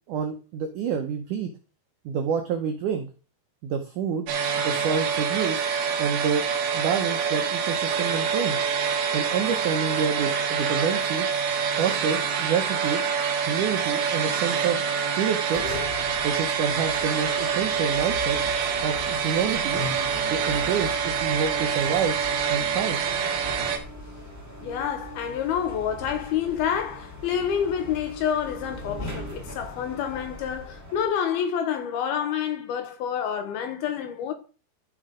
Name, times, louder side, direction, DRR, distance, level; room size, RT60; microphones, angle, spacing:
voice 1, 0.1-1.5 2.1-3.1 3.6-4.3 4.6-5.6 6.0-6.5 6.7-8.6 9.1-11.3 11.8-13.0 13.5-15.6 16.2-18.4 18.8-19.8 20.3-22.2 22.5-23.0, right 7 dB, 85° right, 1.7 m, -28 dB
sound 1, 4.3-23.8, right 6 dB, 70° right, 3.2 m, -26 dB
sound 2, 15.0-31.1, left 1 dB, 5° right, 1.4 m, -39 dB
voice 2, 24.6-34.3, left 8 dB, 75° left, 2.7 m, -28 dB
13.5 x 4.6 x 5.0 m
omnidirectional pair, 4.8 m